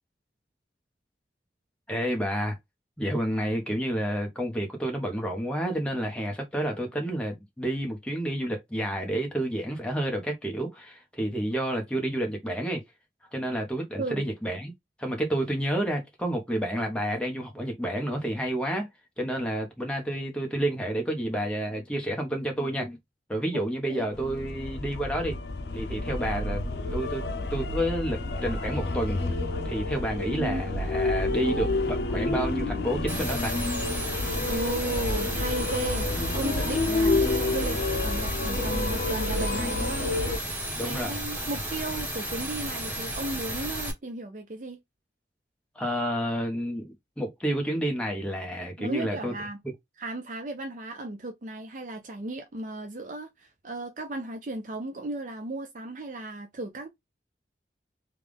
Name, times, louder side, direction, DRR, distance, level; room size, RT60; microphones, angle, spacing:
voice 1, 1.9-2.6 3.0-12.8 13.3-14.7 15.0-18.9 19.2-23.0 23.3-25.3 25.7-26.6 26.9-29.2 29.6-33.5 40.7-41.2 45.7-49.3, right 1 dB, 5° left, 1.0 m, -30 dB
sound 1, 24.1-40.4, left 2 dB, 70° left, 0.6 m, -29 dB
voice 2, 30.3-30.6 34.5-36.1 36.3-40.1 40.8-44.8 48.8-49.6 50.0-56.9, right 2 dB, 45° right, 0.5 m, -35 dB
sound 2, 33.1-43.9, right 1 dB, 10° right, 1.3 m, -33 dB
3.4 x 2.4 x 3.4 m
head